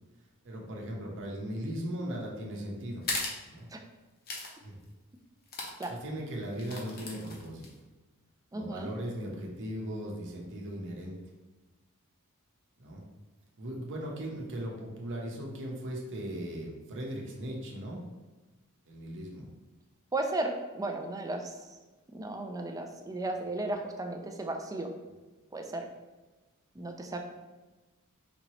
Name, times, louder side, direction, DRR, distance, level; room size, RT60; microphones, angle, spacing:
voice 1, 0.4-3.0 3.5-3.7 4.6-4.8 5.9-7.7 8.5-11.2 12.8-13.0 13.6-18.0 18.9-19.5, equal, 60° right, -1 dB, 0.9 m, -38 dB
sound 1, 3.0-3.4 4.3-4.5 4.8-4.9 5.5-5.9 6.5-7.7, left 3 dB, 45° left, 0.8 m, -36 dB
voice 2, 8.5-8.9 20.1-21.5 22.1-24.9 25.5-25.9 26.8-27.2, right 2 dB, 15° right, 4 dB, 0.4 m, -34 dB
5.2 x 2.9 x 3.0 m, 1.2 s
head